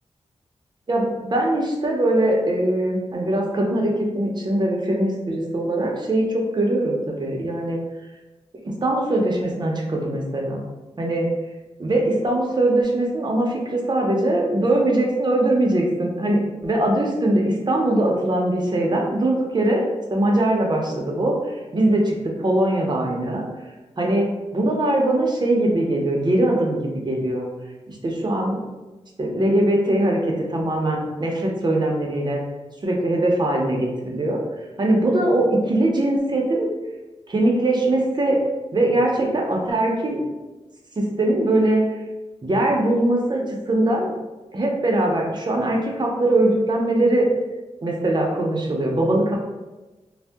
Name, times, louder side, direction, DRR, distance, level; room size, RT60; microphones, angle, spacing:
voice 1, 0.9-7.8 8.6-10.7 11.0-11.3 11.8-22.1 22.4-23.4 24.0-26.8 27.1-27.5 27.9-28.6 29.2-32.4 32.8-34.4 34.8-36.7 37.3-38.4 38.7-40.2 41.0-41.8 42.4-44.1 44.5-47.3 47.8-49.4, right 1 dB, 40° right, 0 dB, 0.6 m, -21 dB
2.6 x 2.1 x 3.4 m, 1.1 s
wide cardioid pair, 90°, 12 cm